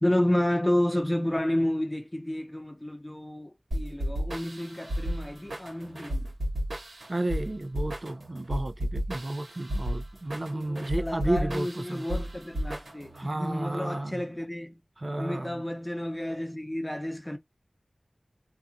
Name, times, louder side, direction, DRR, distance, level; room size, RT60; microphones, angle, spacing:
voice 1, 0.0-6.3 10.5-14.8 15.2-17.4, left 1 dB, 20° left, 0.7 m, -30 dB
sound 1, 3.7-13.3, equal, 80° right, 1.1 m, -33 dB
voice 2, 7.1-12.0 13.1-14.2 15.0-15.6, right 1 dB, 50° right, 0.4 m, -32 dB
2.4 x 2.3 x 2.5 m
wide cardioid pair, 40°, 0 cm